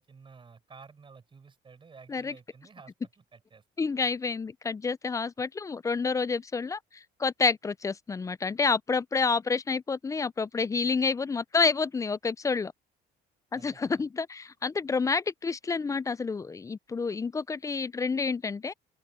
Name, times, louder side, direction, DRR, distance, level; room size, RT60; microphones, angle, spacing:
voice 1, 0.0-3.6 13.5-14.1, right 5 dB, 30° right, 5.5 m, -53 dB
voice 2, 3.8-6.8 7.2-12.7 13.5-18.7, left 4 dB, 20° left, 0.4 m, -29 dB
cardioid pair, 110°, 17 cm